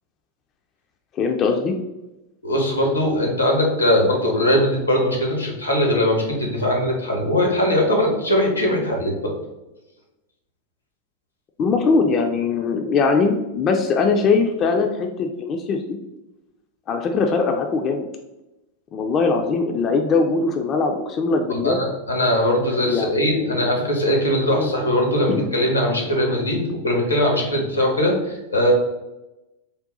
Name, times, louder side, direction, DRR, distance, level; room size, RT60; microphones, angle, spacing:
voice 1, 1.2-1.7 11.6-16.0 16.9-18.1 18.9-21.8 22.7-23.7 24.5-24.7 25.3-25.4, left 4 dB, 30° left, 4 dB, 0.3 m, -21 dB
voice 2, 2.4-9.4 21.5-28.7, left 1 dB, 85° left, 0 dB, 0.9 m, -20 dB
3.7 x 2.3 x 3.8 m, 0.99 s
figure-of-eight pair, 90°, 0 cm